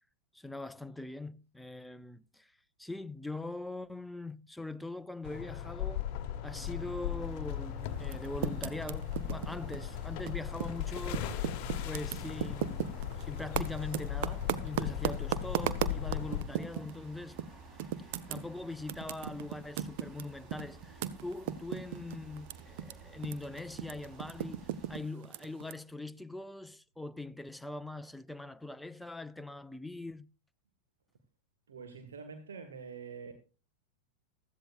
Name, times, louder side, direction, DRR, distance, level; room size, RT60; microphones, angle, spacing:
voice 1, 0.3-2.5 2.8-6.1 6.4-11.3 11.8-17.4 18.3-30.3, left 2 dB, 5° left, 0.6 m, -42 dB
sound 1, 5.2-16.4, left 10 dB, 45° left, 1.1 m, -37 dB
sound 2, 6.5-25.0, right 3 dB, 20° right, 3.6 m, -52 dB
Typing, 8.0-10.8 11.1-17.0 17.4-17.5 17.8-22.9 23.2-25.7, right 11 dB, 50° right, 0.8 m, -36 dB
voice 2, 31.7-33.3, right 5 dB, 65° right, 1.6 m, -45 dB
16.0 x 13.0 x 2.4 m
figure-of-eight pair, 90°, 0 cm